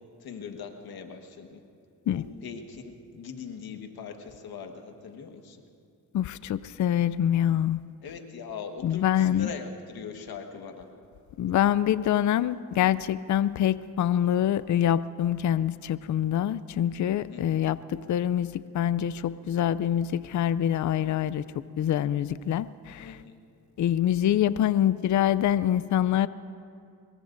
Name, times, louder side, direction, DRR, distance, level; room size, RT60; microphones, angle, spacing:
voice 1, 0.2-1.6 2.1-5.6 8.0-10.9 17.3-17.6 23.0-23.4, left 6 dB, 80° left, 5 dB, 1.6 m, -41 dB
voice 2, 6.1-7.8 8.8-9.5 11.4-21.4 21.8-23.2 23.8-26.3, left 10 dB, 55° left, 16 dB, 0.5 m, -25 dB
24.0 x 22.0 x 2.6 m, 2.3 s
cardioid pair, 70°, 37 cm